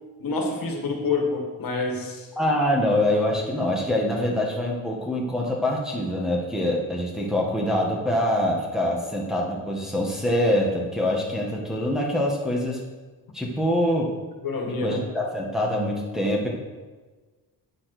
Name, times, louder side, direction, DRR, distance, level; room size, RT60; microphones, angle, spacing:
voice 1, 0.2-2.3 14.4-15.0, left 3 dB, 60° left, 2 dB, 1.9 m, -27 dB
voice 2, 2.4-12.8 13.3-14.1 14.8-16.5, left 1 dB, ahead, -3 dB, 1.6 m, -24 dB
9.2 x 7.7 x 6.0 m, 1.3 s
cardioid pair, 135°, 38 cm